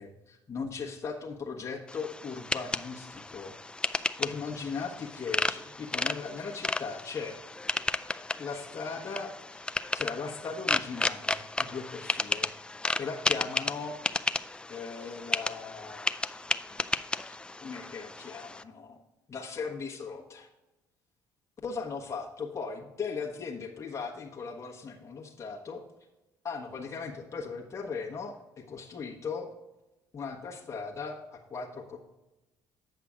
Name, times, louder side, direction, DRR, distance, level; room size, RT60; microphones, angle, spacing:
voice 1, 0.0-3.6 4.2-7.4 8.4-9.6 9.9-12.5 13.0-14.0 14.7-16.1 16.7-16.8 17.3-19.0 19.3-20.5 21.6-25.8 26.4-29.5 30.1-32.0, left 5 dB, 35° left, -2 dB, 1.2 m, -38 dB
sound 1, 1.9-18.6, left 2 dB, 10° left, 0.3 m, -33 dB
8.5 x 5.7 x 3.7 m, 0.99 s
supercardioid pair, 75°, 8 cm